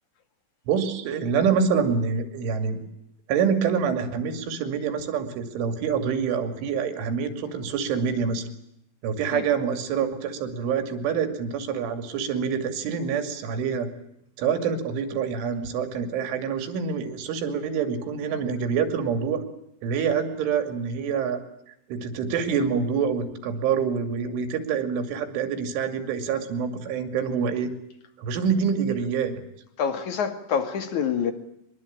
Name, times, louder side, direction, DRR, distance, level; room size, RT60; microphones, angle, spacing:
voice 1, 0.7-2.8 3.3-8.4 9.0-13.9 14.4-19.4 19.8-21.4 21.9-27.7 28.2-29.3, right 6 dB, 85° right, 5.0 m, -26 dB
voice 2, 29.8-31.3, left 7 dB, 50° left, 2.9 m, -26 dB
24.0 x 22.0 x 8.7 m
omnidirectional pair, 5.4 m